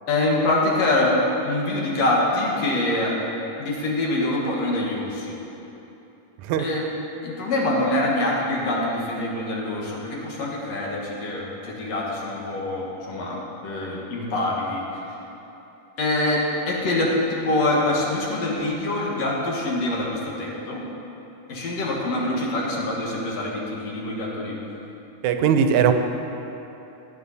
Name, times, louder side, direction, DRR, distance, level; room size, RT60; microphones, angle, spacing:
voice 1, 0.1-3.2 3.6-5.4 6.6-6.8 7.2-15.0 16.0-17.1 17.4-20.8 21.5-24.6, left 2 dB, 65° left, -3 dB, 2.7 m, -25 dB
voice 2, 25.2-25.9, right 8 dB, 80° right, 7 dB, 2.0 m, -19 dB
18.0 x 8.4 x 4.1 m, 3.0 s
omnidirectional pair, 3.3 m